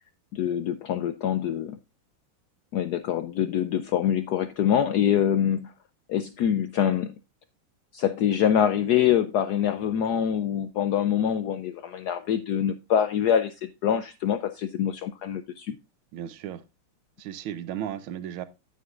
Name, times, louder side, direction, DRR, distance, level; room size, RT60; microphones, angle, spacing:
voice 1, 0.3-1.8 2.7-5.7 6.1-7.1 7.9-15.8, left 9 dB, 85° left, 0.8 m, -25 dB
voice 2, 16.1-16.6 17.2-18.4, right 10 dB, 75° right, 1.6 m, -35 dB
9.4 x 9.3 x 2.4 m
omnidirectional pair, 2.3 m